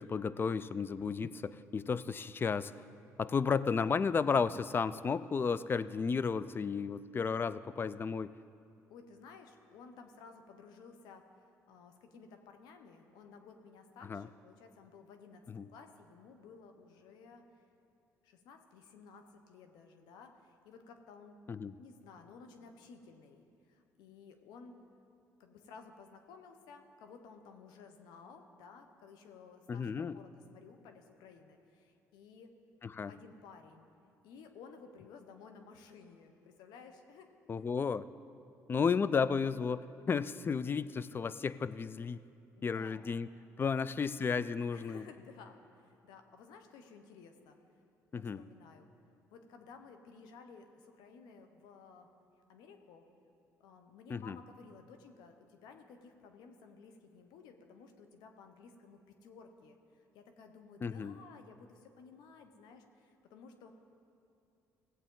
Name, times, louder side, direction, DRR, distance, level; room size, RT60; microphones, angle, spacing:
voice 1, 0.0-2.7 3.2-8.3 14.0-14.3 15.5-15.7 21.5-21.7 29.7-30.2 32.8-33.1 37.5-38.1 38.7-42.2 42.6-43.3 43.6-45.0 48.1-48.4 54.1-54.4 60.8-61.1, left 5 dB, 30° left, 16 dB, 0.4 m, -33 dB
voice 2, 8.9-17.4 18.2-21.4 21.8-24.8 25.4-32.5 33.1-33.9 34.2-37.3 37.6-37.7 42.6-43.0 44.7-47.6 48.1-48.9 49.3-52.1 52.5-53.1 53.6-63.7, left 5 dB, 80° left, 6 dB, 0.9 m, -55 dB
17.0 x 8.1 x 3.8 m, 2.7 s
supercardioid pair, 75°, 7 cm